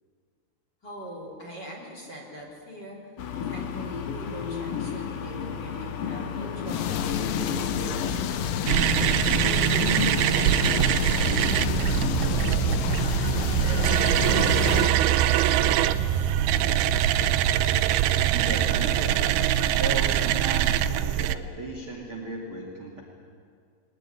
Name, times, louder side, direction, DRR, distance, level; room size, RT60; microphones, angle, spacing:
voice 1, 0.8-3.1 3.5-16.3, equal, 25° left, -1 dB, 3.7 m, -42 dB
sound 1, 3.2-12.4, left 7 dB, 60° left, 2.5 m, -32 dB
sound 2, 6.7-15.0, left 8 dB, 85° left, 3.5 m, -30 dB
sound 3, 8.7-21.4, right 11 dB, 90° right, 2.2 m, -23 dB
voice 2, 18.3-19.2 19.8-23.0, right 2 dB, 35° right, 0 dB, 2.4 m, -35 dB
21.5 x 19.5 x 9.9 m, 2.1 s
omnidirectional pair, 5.4 m